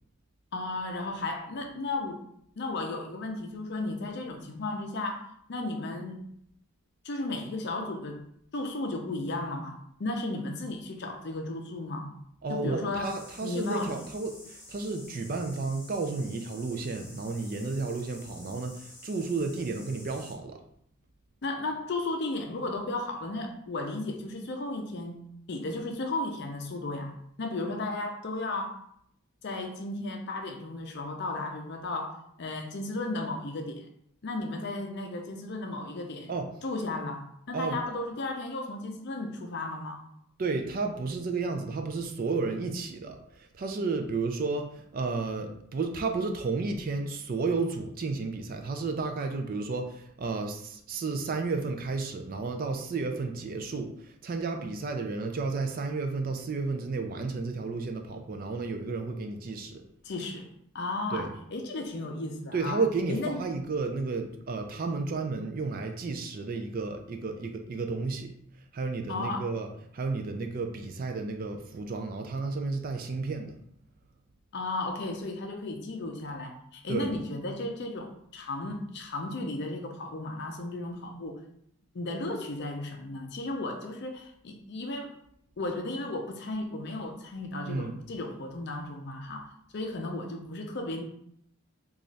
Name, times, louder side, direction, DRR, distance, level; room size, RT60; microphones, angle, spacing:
voice 1, 0.5-2.2 2.6-6.2 7.0-8.3 8.5-12.1 12.5-13.1 13.4-14.0 21.4-27.1 27.4-28.8 29.4-33.9 34.2-36.3 36.6-40.1 60.0-60.5 60.7-62.8 63.1-63.4 69.1-69.5 74.5-81.4 81.9-85.2 85.6-91.0, left 2 dB, 50° left, 3 dB, 0.5 m, -34 dB
voice 2, 12.4-20.6 36.3-36.5 37.5-37.8 40.4-59.8 61.1-61.3 62.5-68.3 68.7-73.5 76.9-77.1 87.7-88.0, right 3 dB, 40° right, 5 dB, 0.3 m, -32 dB
sound 1, 13.0-20.3, left 2 dB, 10° left, 0.8 m, -50 dB
3.1 x 2.4 x 3.9 m, 0.70 s
head